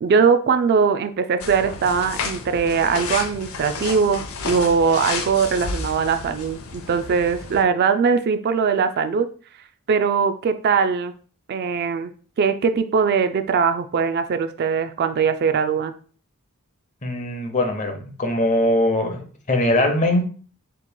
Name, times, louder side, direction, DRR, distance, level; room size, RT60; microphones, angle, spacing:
voice 1, 0.0-9.3 9.9-11.1 11.5-12.1 12.4-15.9, right 5 dB, 50° right, 9 dB, 0.3 m, -21 dB
sound 1, 1.4-7.6, left 4 dB, 70° left, 0.6 m, -31 dB
voice 2, 17.0-20.3, left 1 dB, 35° left, 4 dB, 0.8 m, -21 dB
6.8 x 3.0 x 2.2 m, 0.42 s
head